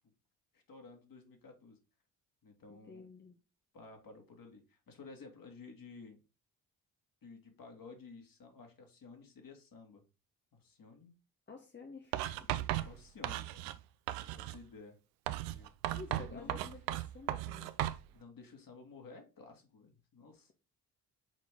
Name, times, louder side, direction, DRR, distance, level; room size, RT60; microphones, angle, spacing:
voice 1, 0.5-1.8 2.4-3.0 3.7-6.2 7.2-10.0 10.5-11.1 12.8-13.7 14.3-15.0 15.5-15.7 16.1-16.6 18.1-20.5, left 4 dB, 50° left, 3 dB, 2.2 m, -53 dB
voice 2, 2.7-3.4 11.5-12.9 15.9-17.7, left 4 dB, 25° left, 4 dB, 1.0 m, -52 dB
Writing, 12.1-13.8 14.1-14.6 15.3-18.0, right 14 dB, 70° right, 0.6 m, -36 dB
6.1 x 4.3 x 3.6 m, 0.31 s
hypercardioid pair, 45°, 45 cm